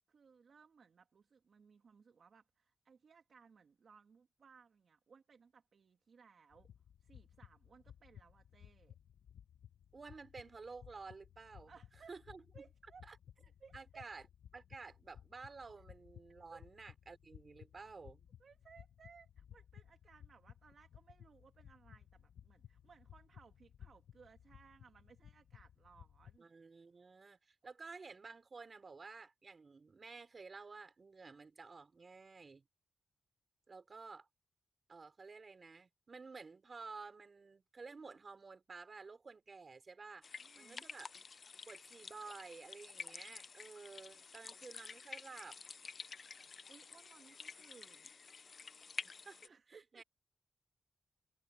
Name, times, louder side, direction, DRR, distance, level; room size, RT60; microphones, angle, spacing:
voice 1, 0.0-6.7 7.0-9.0 11.7-12.2 12.5-13.1 13.4-14.1 16.5-16.6 18.4-26.5 40.4-40.9 46.7-48.1 49.4-50.0, right 5 dB, 50° right, 2.6 m, -63 dB
sound 1, 6.5-26.4, left 9 dB, 75° left, 1.0 m, -60 dB
voice 2, 9.9-11.7 12.1-12.4 13.0-13.2 13.7-14.2 14.5-18.3 26.4-32.6 33.7-34.3 34.9-40.3 40.6-41.1 41.7-45.6 49.0-49.4 49.7-50.0, right 4 dB, 35° right, 4.4 m, -52 dB
sound 2, 40.2-49.5, left 5 dB, 45° left, 0.6 m, -50 dB
wide cardioid pair, 130°, 0 cm